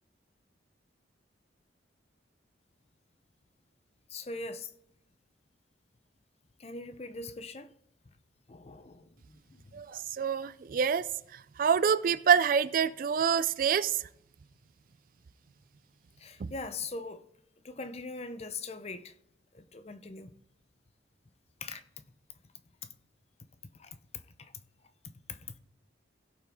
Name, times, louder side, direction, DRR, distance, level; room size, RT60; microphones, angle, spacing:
voice 1, 4.1-4.7 6.6-7.7 8.5-9.8 16.2-17.2 17.6-19.1 19.5-20.3 21.6-21.8 23.8-24.0 24.4-24.5 25.3-25.5, left 3 dB, 35° left, 0.6 m, -41 dB
voice 2, 9.7-11.1 11.6-13.9, right 7 dB, 45° right, 0.3 m, -26 dB
16.5 x 5.7 x 3.6 m
head